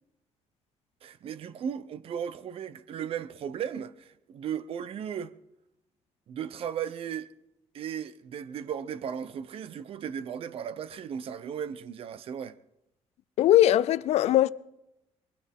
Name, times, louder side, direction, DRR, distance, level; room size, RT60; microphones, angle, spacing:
voice 1, 1.0-5.3 6.3-7.3 7.7-12.6, right 8 dB, 55° right, 0.8 m, -36 dB
voice 2, 13.4-14.5, left 13 dB, 75° left, 0.5 m, -20 dB
23.0 x 16.5 x 3.7 m
cardioid pair, 125°, 11 cm